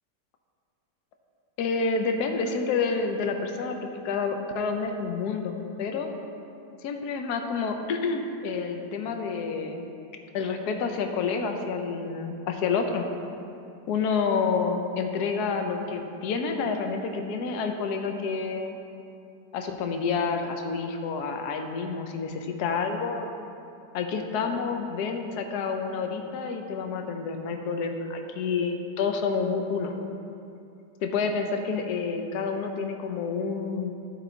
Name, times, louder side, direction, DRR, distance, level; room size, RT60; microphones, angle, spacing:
voice 1, 1.6-6.1 6.8-9.8 10.3-13.1 13.9-18.7 19.5-23.3 23.9-29.9 31.0-33.9, left 5 dB, 65° left, 5 dB, 1.2 m, -29 dB
13.5 x 4.7 x 3.9 m, 2.6 s
omnidirectional pair, 2.0 m